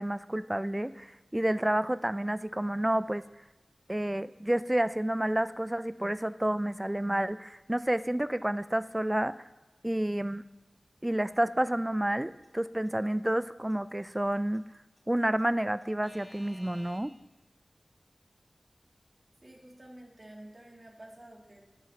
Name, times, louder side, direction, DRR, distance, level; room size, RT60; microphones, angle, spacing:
voice 1, 0.0-3.2 3.9-9.3 9.8-10.4 11.0-14.6 15.1-17.1, right 1 dB, 15° right, 14 dB, 0.3 m, -30 dB
Alarm / Clock, 12.2-17.0, equal, 35° left, 2.1 m, -53 dB
voice 2, 19.4-21.6, right 1 dB, 45° right, -3 dB, 2.4 m, -50 dB
14.5 x 7.1 x 2.8 m, 1.0 s
wide cardioid pair, 50°, 0 cm